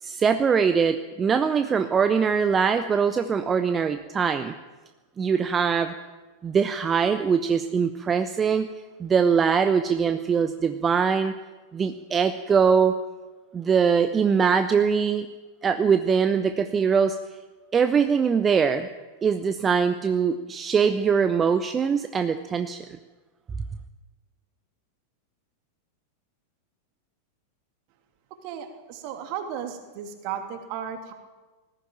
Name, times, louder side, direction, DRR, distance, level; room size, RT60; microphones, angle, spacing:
voice 1, 0.0-4.5 5.2-5.9 6.4-8.7 9.0-11.3 11.7-13.0 13.5-15.3 15.6-17.2 17.7-18.9 19.2-22.8, right 6 dB, 20° right, 9 dB, 0.9 m, -22 dB
voice 2, 28.4-31.1, right 8 dB, 45° right, 6 dB, 2.9 m, -34 dB
19.5 x 15.0 x 9.1 m, 1.3 s
figure-of-eight pair, 90°, 0 cm